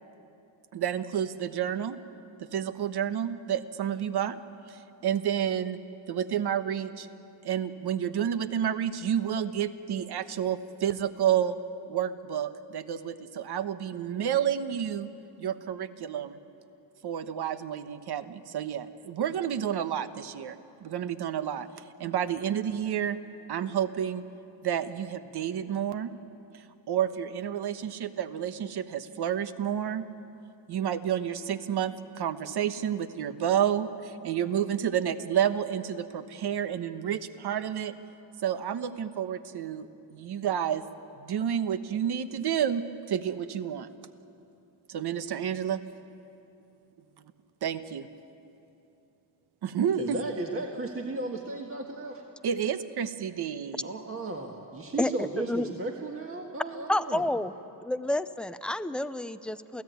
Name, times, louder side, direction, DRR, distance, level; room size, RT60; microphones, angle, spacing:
voice 1, 0.7-2.0 2.4-4.4 4.7-5.8 6.1-7.1 7.4-11.6 11.9-15.1 15.4-16.4 17.0-21.7 22.0-23.2 23.5-24.2 24.6-26.1 26.9-30.1 30.7-37.9 38.4-40.8 41.2-43.9 44.9-45.8 47.6-48.1 49.6-50.2 52.4-53.9, right 9 dB, 60° right, 11 dB, 1.2 m, -30 dB
voice 2, 50.0-52.2 53.8-57.2, right 2 dB, 30° right, 1 dB, 1.7 m, -35 dB
voice 3, 56.9-57.5 57.8-59.8, left 1 dB, ahead, 12 dB, 0.5 m, -29 dB
28.5 x 16.5 x 9.4 m, 2.8 s
cardioid pair, 135°, 45 cm